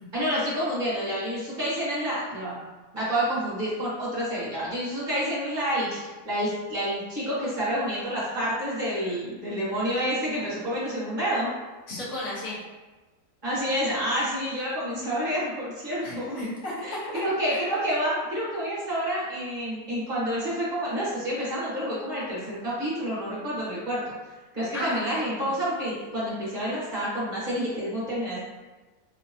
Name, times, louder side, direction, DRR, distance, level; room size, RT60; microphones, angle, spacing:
voice 1, 0.1-2.6 2.9-11.5 13.4-16.4 16.8-24.1 24.5-28.4, equal, 30° right, -8 dB, 1.2 m, -29 dB
voice 2, 11.9-12.6 16.0-17.1 17.5-17.6 24.7-25.0, left 1 dB, 50° left, -7 dB, 1.3 m, -33 dB
3.4 x 2.8 x 2.7 m, 1.2 s
omnidirectional pair, 1.8 m